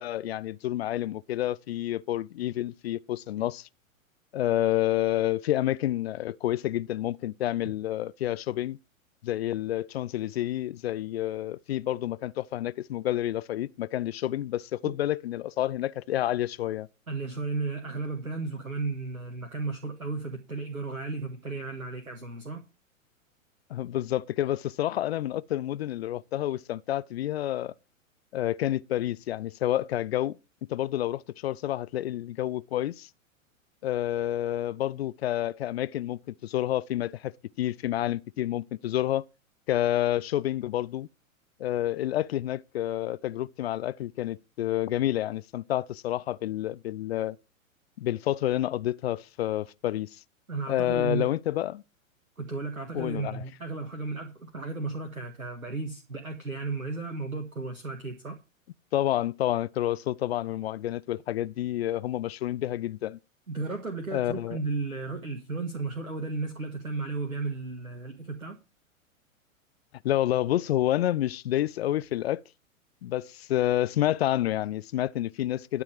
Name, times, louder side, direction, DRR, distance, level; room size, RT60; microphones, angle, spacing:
voice 1, 0.0-3.7 4.3-8.8 9.2-16.9 23.7-27.7 28.3-30.4 30.7-33.1 33.8-37.3 37.6-39.2 39.7-41.1 41.6-47.4 48.0-50.1 50.7-51.8 52.9-53.4 58.9-63.2 64.1-64.6 70.0-72.4 73.0-75.8, left 13 dB, 50° left, 0.5 m, -29 dB
voice 2, 17.1-22.6 50.5-51.2 52.4-58.4 63.5-68.6, right 3 dB, 90° right, 1.7 m, -34 dB
12.0 x 6.9 x 4.9 m
figure-of-eight pair, 105°, 41 cm